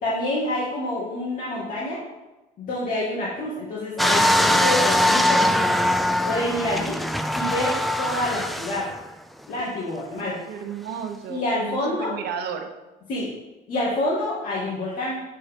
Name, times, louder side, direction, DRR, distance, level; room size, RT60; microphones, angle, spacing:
voice 1, 0.0-2.0 2.6-5.8 6.2-7.0 7.3-8.9 9.5-10.4 11.3-12.2 13.1-13.3 13.7-15.2, left 1 dB, 55° left, -7 dB, 2.0 m, -27 dB
sound 1, 4.0-9.0 9.6-9.7, left 1 dB, ahead, 0.4 m, -22 dB
voice 2, 10.1-12.7, right 7 dB, 75° right, 5 dB, 1.0 m, -33 dB
7.7 x 4.2 x 5.2 m, 1.1 s
cardioid pair, 110°, 17 cm